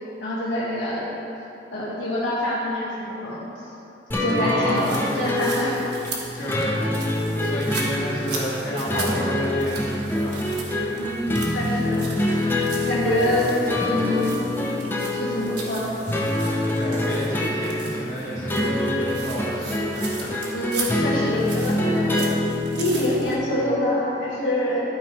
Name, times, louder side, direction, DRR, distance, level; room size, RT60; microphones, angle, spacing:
voice 1, 0.2-1.1 1.7-3.4 4.2-5.8 11.0-12.0 12.9-13.5 13.9-14.4 15.1-16.0 20.5-22.2 22.7-24.8, left 1 dB, 85° left, -8 dB, 1.4 m, -25 dB
sound 1, 4.1-23.3, left 1 dB, 10° left, 0.7 m, -26 dB
voice 2, 4.4-5.0 6.3-10.5 13.4-13.5 16.7-20.3, equal, 45° left, -8 dB, 1.9 m, -31 dB
sound 2, 4.7-23.4, right 3 dB, 65° right, 1.4 m, -38 dB
sound 3, 13.0-15.4, left 1 dB, 65° left, 1.9 m, -33 dB
12.0 x 4.9 x 4.5 m, 2.9 s
head